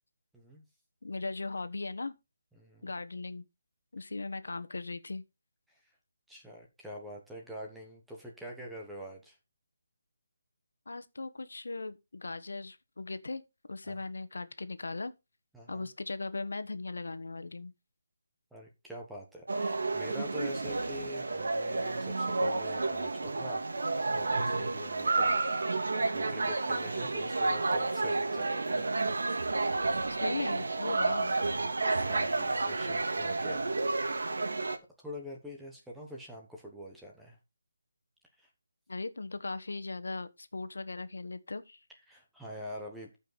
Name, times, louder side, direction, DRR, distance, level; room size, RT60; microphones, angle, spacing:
voice 1, 0.3-0.6 2.6-2.9 5.7-5.8 6.3-9.4 13.9-14.0 15.5-15.9 18.5-23.6 24.1-25.4 26.0-28.8 32.1-33.6 35.0-37.4 38.4-38.5 42.1-43.1, left 1 dB, ahead, 1.1 m, -45 dB
voice 2, 1.0-2.1 2.8-3.4 3.9-5.2 10.9-13.4 13.7-15.1 15.7-17.7 30.1-31.3 38.9-41.8, left 3 dB, 75° left, 1.3 m, -38 dB
sound 1, 19.5-34.8, right 3 dB, 65° right, 1.9 m, -31 dB
14.0 x 5.5 x 4.1 m
hypercardioid pair, 180°, 0 cm